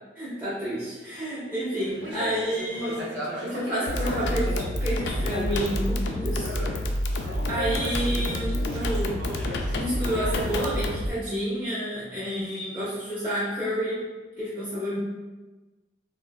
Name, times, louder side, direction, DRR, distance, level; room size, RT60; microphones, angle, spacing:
voice 1, 0.2-3.1 3.4-6.5 7.5-9.3 9.7-14.0 14.4-15.0, equal, 15° right, -11 dB, 0.6 m, -30 dB
sound 1, 1.8-4.8 5.2-6.9 7.1-10.5, equal, 80° right, 0.6 m, -36 dB
sound 2, 3.9-11.1, left 1 dB, 85° left, 0.3 m, -28 dB
3.5 x 2.2 x 2.2 m, 1.2 s
head